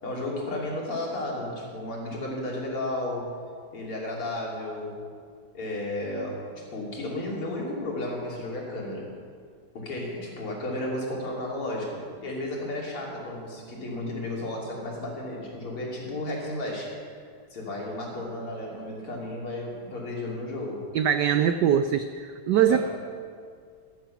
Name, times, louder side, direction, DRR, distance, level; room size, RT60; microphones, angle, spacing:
voice 1, 0.0-3.3 3.7-5.0 5.5-9.1 9.7-17.0 17.5-20.9 22.6-22.8, left 1 dB, 80° left, -3 dB, 4.1 m, -33 dB
voice 2, 20.9-22.8, right 9 dB, 85° right, 10 dB, 0.9 m, -22 dB
14.0 x 13.0 x 5.9 m, 2.1 s
omnidirectional pair, 2.4 m